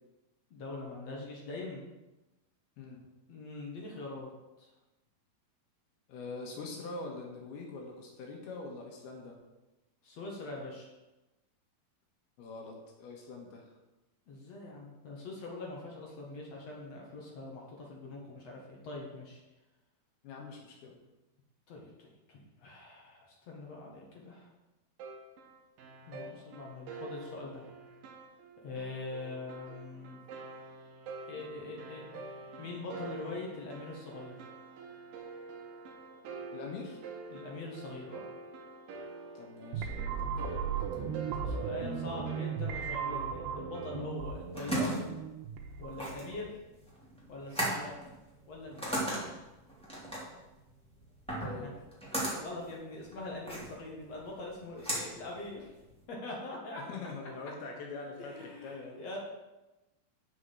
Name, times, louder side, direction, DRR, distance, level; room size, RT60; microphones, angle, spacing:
voice 1, 0.5-1.9 3.3-4.3 4.6-4.7 10.0-10.9 14.3-19.4 21.7-24.5 26.1-27.7 28.6-30.2 31.3-34.5 37.3-38.3 41.4-45.0 45.8-46.5 47.3-48.0 48.5-48.9 51.6-51.7 52.4-55.7 56.1-57.0 58.2-59.2, left 2 dB, 50° left, -2 dB, 2.3 m, -43 dB
voice 2, 6.1-9.4 12.4-13.7 20.2-21.0 36.5-37.0 39.3-41.1 51.4-51.7 56.9-59.0, left 3 dB, 80° left, 1 dB, 3.2 m, -44 dB
sound 1, 25.0-44.0, right 3 dB, 70° right, 2.8 m, -47 dB
sound 2, 39.7-46.6, right 6 dB, 90° right, 2.8 m, -37 dB
sound 3, 44.1-56.0, right 1 dB, ahead, 2.5 m, -37 dB
7.2 x 6.5 x 7.7 m, 1.0 s
omnidirectional pair, 4.4 m